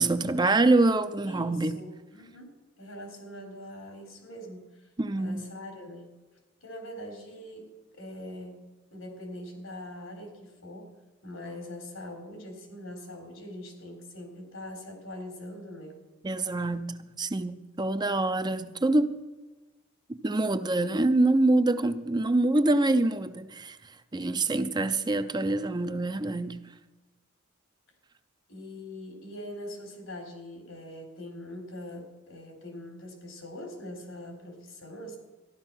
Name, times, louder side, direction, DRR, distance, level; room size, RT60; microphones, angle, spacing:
voice 1, 0.0-1.8 5.0-5.4 16.2-19.1 20.1-23.8 24.1-26.6, right 2 dB, 20° right, 0.6 m, -25 dB
voice 2, 1.2-4.9 5.1-6.1 6.6-8.6 8.9-10.9 11.2-16.0 28.5-35.2, left 1 dB, 85° left, 3.8 m, -42 dB
14.0 x 11.5 x 5.8 m
head